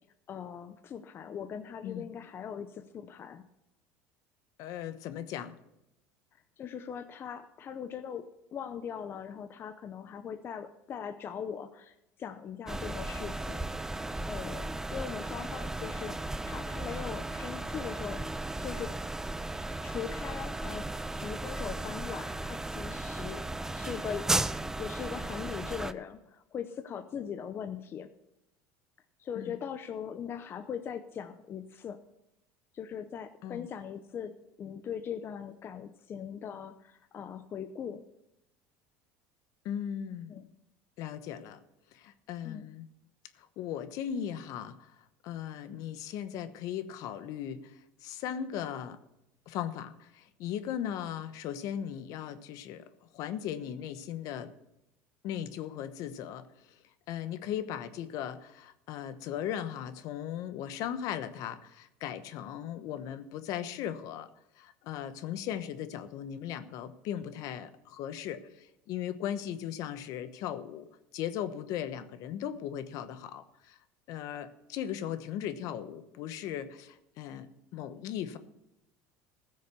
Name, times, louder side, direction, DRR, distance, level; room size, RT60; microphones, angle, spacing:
voice 1, 0.3-3.5 6.3-13.7 14.3-18.2 18.6-18.9 19.8-24.3 24.8-28.1 29.2-32.0 32.7-38.0 40.3-40.5 42.4-42.7 50.8-51.0, left 8 dB, 35° left, 9 dB, 0.7 m, -40 dB
voice 2, 4.6-5.5 29.3-29.6 33.4-33.7 39.6-40.3 41.0-41.6 41.9-42.9 43.4-44.9 45.2-49.0 49.5-52.8 53.1-54.5 55.2-64.3 64.6-70.9 71.1-73.8 74.1-78.4, left 10 dB, 60° left, 11 dB, 1.0 m, -38 dB
sound 1, 12.7-25.9, right 2 dB, 5° right, 0.4 m, -35 dB
15.0 x 6.5 x 6.8 m, 0.87 s
supercardioid pair, 115°, 7 cm